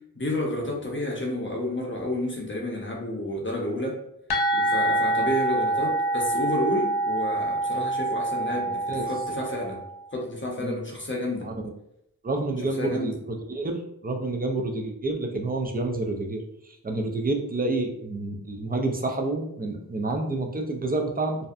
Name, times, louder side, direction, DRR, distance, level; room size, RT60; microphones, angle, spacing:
voice 1, 0.2-3.9 4.5-9.8 10.1-11.5 12.8-13.1, left 1 dB, 30° left, -2 dB, 0.7 m, -30 dB
sound 1, 4.3-9.9, right 2 dB, 90° left, 0.5 m, -26 dB
voice 2, 8.6-9.1 10.6-10.8 11.4-11.7 12.2-21.4, right 2 dB, 25° right, 3 dB, 0.4 m, -29 dB
2.6 x 2.1 x 2.4 m, 0.77 s
wide cardioid pair, 55°, 37 cm